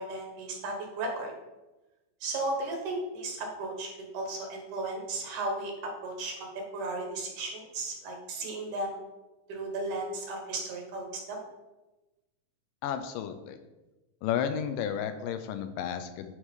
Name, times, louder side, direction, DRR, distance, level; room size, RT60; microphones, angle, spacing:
voice 1, 0.0-1.3 2.2-3.9 4.1-9.0 9.5-11.4, right 2 dB, 65° right, 1 dB, 2.4 m, -35 dB
voice 2, 12.8-13.6 14.2-16.3, left 8 dB, 85° left, 9 dB, 2.2 m, -32 dB
9.4 x 3.2 x 5.3 m, 1.1 s
omnidirectional pair, 3.9 m